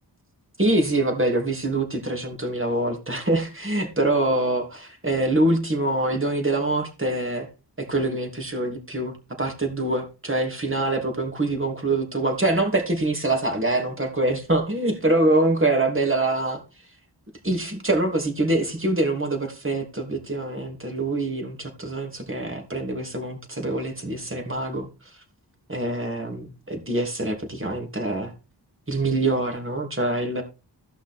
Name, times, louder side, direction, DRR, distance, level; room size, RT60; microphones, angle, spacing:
voice 1, 0.6-7.5 7.8-16.6 17.4-24.9 25.7-28.3 28.9-30.4, right 2 dB, 30° right, 3 dB, 2.9 m, -24 dB
14.5 x 5.7 x 4.5 m, 0.32 s
wide cardioid pair, 70°, 42 cm